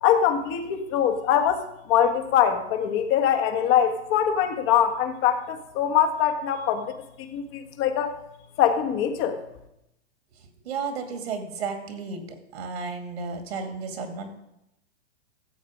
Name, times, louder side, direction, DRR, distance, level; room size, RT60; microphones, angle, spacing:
voice 1, 0.0-6.9 7.2-8.2 8.6-9.4, left 9 dB, 35° left, 6 dB, 1.5 m, -23 dB
voice 2, 10.6-12.2 12.5-14.4, right 5 dB, 65° right, 6 dB, 2.3 m, -33 dB
13.5 x 8.0 x 5.0 m, 0.85 s
hypercardioid pair, 105°, 33 cm